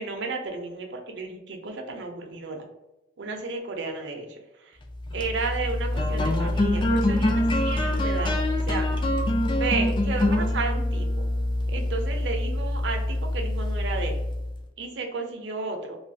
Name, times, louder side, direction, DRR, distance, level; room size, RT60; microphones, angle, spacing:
voice 1, 0.0-2.6 3.2-4.4 5.1-8.9 9.5-11.1 11.7-14.2 14.8-16.0, right 4 dB, 65° right, 3 dB, 0.6 m, -33 dB
sound 1, 5.0-14.6, left 1 dB, 25° left, 0.3 m, -25 dB
3.1 x 2.3 x 2.6 m, 0.96 s
head